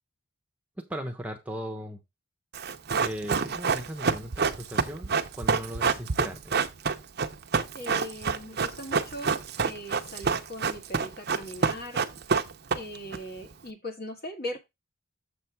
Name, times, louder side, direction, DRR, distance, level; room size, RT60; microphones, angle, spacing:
voice 1, 0.8-2.0 3.0-6.6, equal, 5° right, 2 dB, 0.9 m, -38 dB
Run, 2.5-13.2 13.4-13.5, right 5 dB, 50° right, 0.7 m, -27 dB
voice 2, 7.7-12.0 12.7-14.6, left 1 dB, 50° left, 4 dB, 1.8 m, -39 dB
7.4 x 3.4 x 5.9 m, 0.22 s
head